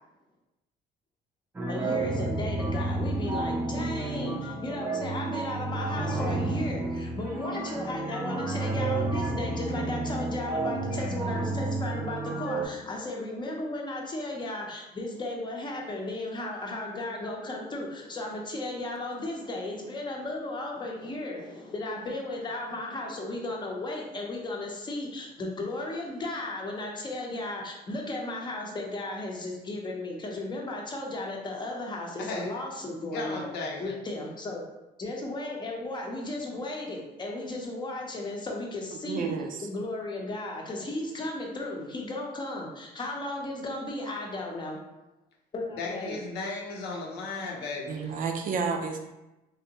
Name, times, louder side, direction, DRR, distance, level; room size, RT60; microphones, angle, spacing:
sound 1, 1.5-12.6, right 2 dB, 15° right, 0.6 m, -31 dB
voice 1, 1.7-33.5 33.8-34.6 35.0-39.3 39.6-44.8 45.5-46.1 47.4-47.5, left 2 dB, 25° left, -1 dB, 0.7 m, -35 dB
voice 2, 33.0-33.9 45.7-48.1, left 3 dB, 75° left, -1 dB, 0.8 m, -35 dB
voice 3, 39.1-39.7 47.9-49.0, right 5 dB, 55° right, 4 dB, 0.5 m, -30 dB
3.2 x 2.6 x 2.9 m, 0.97 s
cardioid pair, 110°, 17 cm